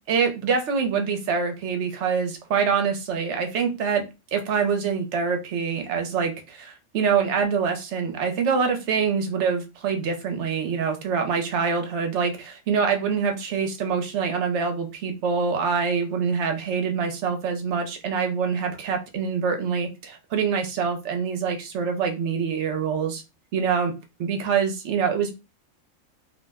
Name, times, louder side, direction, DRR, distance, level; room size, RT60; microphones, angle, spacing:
voice 1, 0.1-4.0 4.3-23.2 23.5-23.9 24.2-25.3, right 6 dB, 65° right, 5 dB, 0.9 m, -25 dB
2.5 x 2.0 x 3.4 m, 0.26 s
omnidirectional pair, 1.4 m